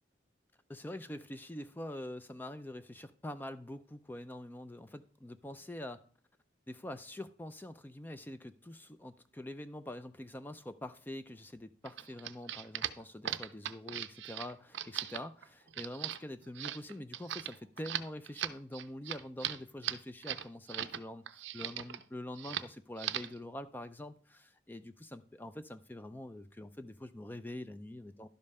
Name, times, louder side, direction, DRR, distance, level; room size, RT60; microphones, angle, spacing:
voice 1, 0.7-6.0 6.7-28.3, left 1 dB, 10° left, 0.4 m, -45 dB
sound 1, 11.8-21.0 21.3-22.0 22.4-22.7 23.0-23.4, right 11 dB, 75° right, 0.5 m, -39 dB
11.5 x 5.4 x 5.4 m
head